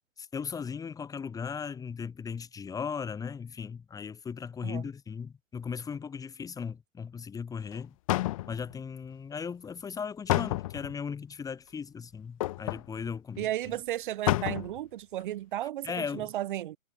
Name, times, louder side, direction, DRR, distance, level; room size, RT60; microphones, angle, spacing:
voice 1, 0.2-7.9 8.5-13.5 15.8-16.3, left 6 dB, 10° left, 4.9 m, -37 dB
sound 1, 7.7-7.8 8.1-8.8 10.3-11.0 12.4-12.9 13.4-13.5 13.7-13.8 14.3-14.8 15.2-15.3, left 17 dB, 25° left, 1.1 m, -29 dB
voice 2, 13.4-16.8, right 13 dB, 40° right, 4.1 m, -34 dB
figure-of-eight pair, 140°, 40 cm